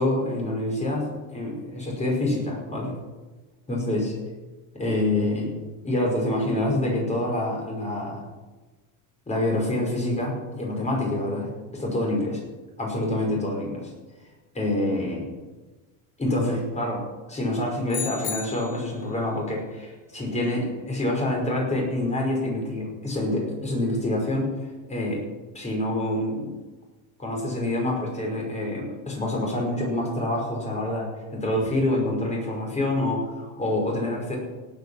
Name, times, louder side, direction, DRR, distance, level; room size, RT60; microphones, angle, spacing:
voice 1, 0.0-2.9 3.7-4.1 4.7-5.6 5.8-8.2 9.3-12.4 12.8-13.9 14.5-15.3 16.2-17.0 17.3-24.5 24.9-25.2 25.5-26.6 27.2-34.4, left 1 dB, 20° left, -1 dB, 5.4 m, -26 dB
sound 1, 17.9-19.0, left 8 dB, 45° left, 2.8 m, -33 dB
17.5 x 8.8 x 6.4 m, 1.2 s
cardioid pair, 145°, 37 cm